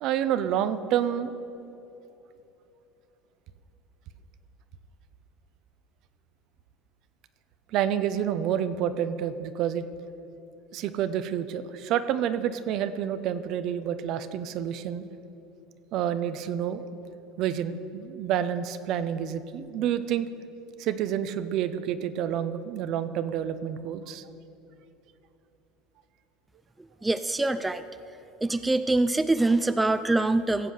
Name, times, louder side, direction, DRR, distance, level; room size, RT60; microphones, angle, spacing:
voice 1, 0.0-1.3 7.7-9.8 10.7-15.1 15.9-16.8 17.4-20.3 20.8-24.3, right 9 dB, 55° right, 11 dB, 0.7 m, -28 dB
voice 2, 27.0-27.8 28.4-30.7, right 2 dB, 10° right, 11 dB, 0.4 m, -24 dB
16.5 x 7.6 x 6.5 m, 3.0 s
supercardioid pair, 95°, 0 cm